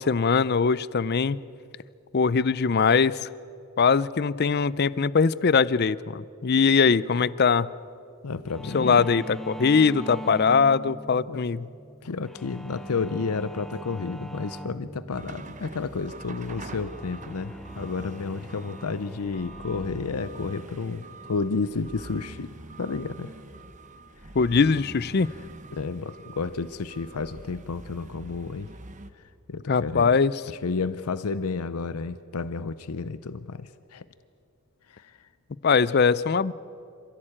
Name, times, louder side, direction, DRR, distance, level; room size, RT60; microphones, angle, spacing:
voice 1, 0.0-1.4 2.1-3.3 3.8-7.7 8.7-11.7 24.3-25.3 29.7-30.3 35.6-36.5, left 5 dB, 45° left, 19 dB, 0.5 m, -21 dB
voice 2, 8.2-9.1 11.3-11.4 12.0-23.3 24.2-24.3 25.7-28.7 29.1-30.2 30.5-34.0 34.9-35.3, left 4 dB, 90° left, 14 dB, 0.6 m, -31 dB
sound 1, 8.5-22.9, equal, ahead, 0.8 m, -42 dB
sound 2, 15.1-29.1, right 2 dB, 35° right, 1.1 m, -44 dB
27.5 x 15.5 x 8.8 m, 2.5 s
head